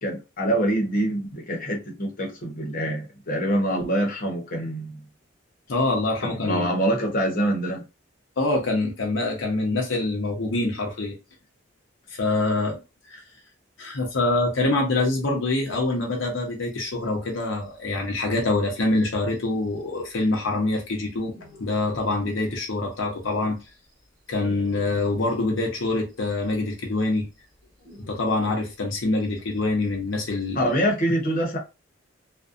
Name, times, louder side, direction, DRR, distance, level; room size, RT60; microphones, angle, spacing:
voice 1, 0.0-5.0 6.2-7.8 30.5-31.6, right 1 dB, 45° left, 0.8 m, -25 dB
voice 2, 5.7-6.7 8.4-11.1 12.1-12.8 13.1-13.2 13.8-21.3 21.6-23.6 24.3-27.3 28.0-30.7, left 2 dB, 80° left, 0.7 m, -25 dB
sound 1, 16.1-16.7 17.0-17.1 17.3-17.4 17.7-17.8 18.0-20.5 20.7-23.0 23.2-26.1 26.5-26.6 26.9-29.6 29.8-29.9 30.1-30.9, equal, 20° right, 1.1 m, -48 dB
2.5 x 2.1 x 2.4 m
head